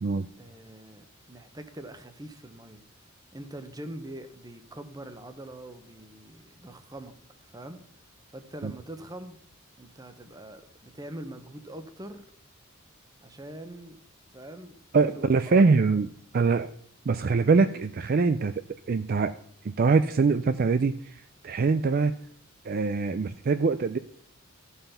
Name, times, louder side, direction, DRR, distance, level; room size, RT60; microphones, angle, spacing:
voice 1, 0.4-2.8 3.3-7.1 7.4-7.8 8.3-9.4 9.8-12.3 13.2-14.0 14.3-14.7 15.0-16.0, right 1 dB, 20° right, 9 dB, 0.9 m, -43 dB
voice 2, 14.9-16.1 16.3-16.7 17.1-18.5 18.9-19.3 19.6-22.1 22.7-24.0, right 4 dB, 45° right, 11 dB, 0.4 m, -23 dB
13.5 x 5.6 x 5.7 m, 0.63 s
head